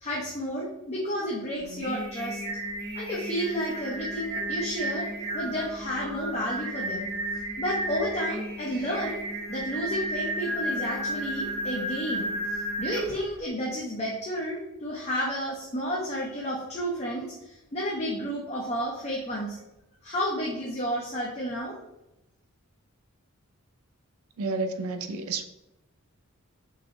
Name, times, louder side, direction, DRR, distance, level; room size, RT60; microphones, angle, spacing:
voice 1, 0.0-2.4 2.9-5.1 5.3-7.1 7.6-9.2 9.5-19.6 20.0-21.8, equal, 30° left, -4 dB, 0.7 m, -31 dB
Singing, 1.6-13.3, right 1 dB, 45° right, 1.5 m, -33 dB
voice 2, 24.4-25.5, right 3 dB, 80° right, 7 dB, 0.5 m, -30 dB
4.0 x 2.8 x 3.9 m, 0.93 s
head